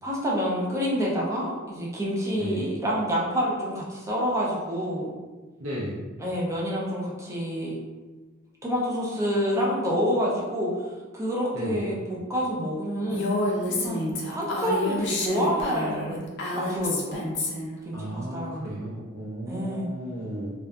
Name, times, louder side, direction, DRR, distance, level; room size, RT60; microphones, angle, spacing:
voice 1, 0.0-5.1 6.2-7.8 8.6-13.2 13.8-17.2 17.8-18.8 19.5-19.9, equal, 15° right, -4 dB, 0.4 m, -28 dB
voice 2, 2.3-2.7 5.6-6.0 11.5-11.9 17.9-20.5, right 1 dB, 80° right, -7 dB, 0.6 m, -34 dB
Female speech woman speaking, 13.1-17.8, left 2 dB, 60° left, 0.4 m, -29 dB
2.6 x 2.3 x 2.3 m, 1.2 s
head